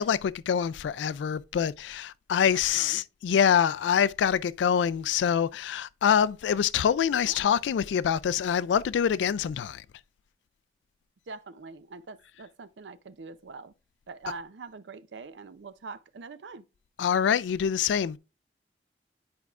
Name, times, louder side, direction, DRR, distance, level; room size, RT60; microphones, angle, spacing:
voice 1, 0.0-9.8 17.0-18.2, left 8 dB, 90° left, 0.3 m, -25 dB
voice 2, 2.5-3.0 7.3-7.4 11.3-13.7 14.1-16.7, right 4 dB, 85° right, 0.5 m, -43 dB
10.5 x 4.6 x 2.4 m
head